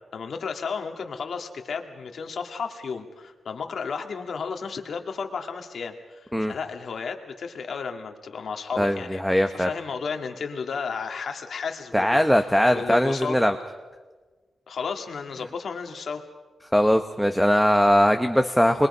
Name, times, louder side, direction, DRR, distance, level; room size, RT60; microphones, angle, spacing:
voice 1, 0.1-12.2 12.7-13.4 14.7-16.2, left 5 dB, 65° left, 4 dB, 1.9 m, -33 dB
voice 2, 8.8-9.7 11.9-13.5 16.7-18.9, equal, ahead, 5 dB, 0.8 m, -20 dB
27.0 x 22.0 x 5.5 m, 1.3 s
wide cardioid pair, 125°, 0 cm